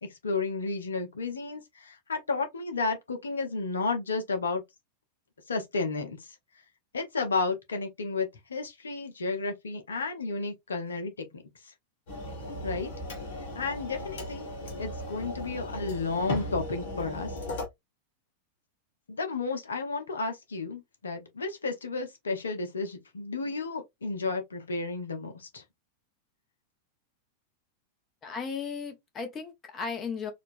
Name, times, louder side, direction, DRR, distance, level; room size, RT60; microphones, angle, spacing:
voice 1, 0.0-4.6 5.5-6.4 6.9-11.7 12.6-12.9 13.5-14.5 14.8-17.4 19.1-25.6, left 3 dB, 70° left, 0.9 m, -32 dB
sound 1, 12.1-17.7, left 1 dB, 55° left, 1.3 m, -37 dB
voice 2, 28.2-30.3, left 5 dB, 25° left, 1.1 m, -35 dB
4.2 x 2.5 x 2.5 m
figure-of-eight pair, 90°, 0 cm